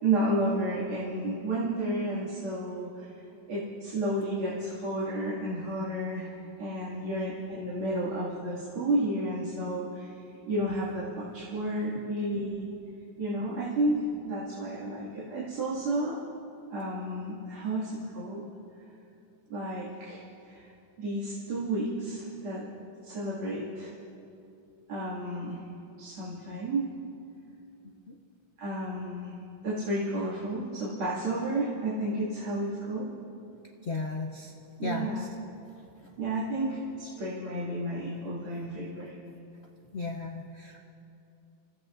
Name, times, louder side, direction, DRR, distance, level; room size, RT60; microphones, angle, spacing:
voice 1, 0.0-3.1 3.5-10.2 10.5-12.7 13.2-16.2 16.7-18.4 19.5-20.7 21.0-22.7 23.0-23.9 24.9-25.7 26.0-26.9 28.6-29.3 29.6-33.1 34.8-35.2 36.2-39.1, right 1 dB, 80° right, -9 dB, 3.2 m, -31 dB
voice 2, 6.9-7.2 13.4-13.5 28.1-28.2 33.8-34.5 34.8-35.3 39.9-40.8, left 3 dB, 65° left, 1 dB, 0.6 m, -35 dB
29.5 x 15.5 x 2.6 m, 2.8 s
omnidirectional pair, 2.3 m